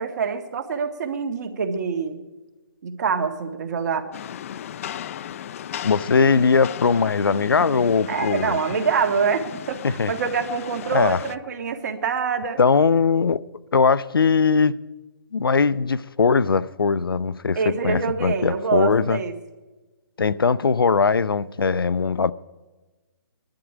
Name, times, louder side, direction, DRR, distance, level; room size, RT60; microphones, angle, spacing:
voice 1, 0.0-2.2 2.8-4.1 8.1-12.6 17.6-19.3, right 5 dB, 50° right, 1.7 m, -25 dB
Rain, 4.1-11.4, left 10 dB, 40° left, 0.4 m, -36 dB
voice 2, 5.8-8.6 9.8-10.1 10.9-11.2 12.6-13.4 13.7-14.8 15.3-19.2 20.2-22.3, left 5 dB, 90° left, 0.6 m, -20 dB
20.5 x 11.5 x 5.0 m
hypercardioid pair, 150°, 12 cm